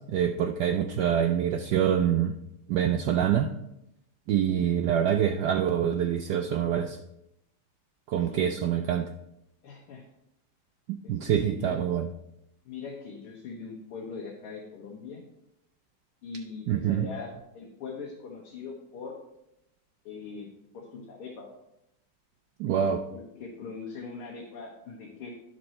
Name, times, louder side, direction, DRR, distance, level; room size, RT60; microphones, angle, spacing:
voice 1, 0.1-2.3 2.7-3.5 4.3-7.0 8.1-9.1 11.1-12.1 16.7-17.1 22.6-23.0, right 9 dB, 85° right, 6 dB, 0.9 m, -25 dB
voice 2, 9.6-10.1 11.0-11.8 12.7-15.2 16.2-19.1 20.1-20.5 20.7-21.5 23.1-25.3, left 4 dB, 90° left, -1 dB, 2.1 m, -41 dB
9.8 x 6.0 x 4.3 m, 0.84 s
omnidirectional pair, 2.4 m